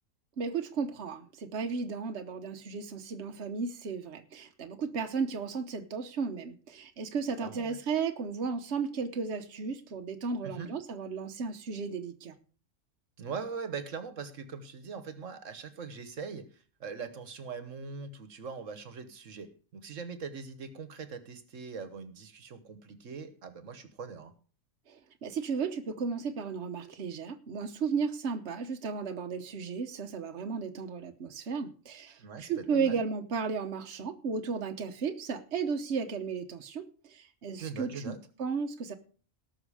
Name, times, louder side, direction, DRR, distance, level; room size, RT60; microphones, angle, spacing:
voice 1, 0.4-12.3 24.9-38.9, right 5 dB, 60° right, 5 dB, 1.3 m, -34 dB
voice 2, 7.4-7.8 10.4-10.7 13.2-24.3 32.2-33.0 37.6-38.2, right 5 dB, 75° right, 10 dB, 1.5 m, -41 dB
18.5 x 6.3 x 4.9 m, 0.41 s
omnidirectional pair, 1.3 m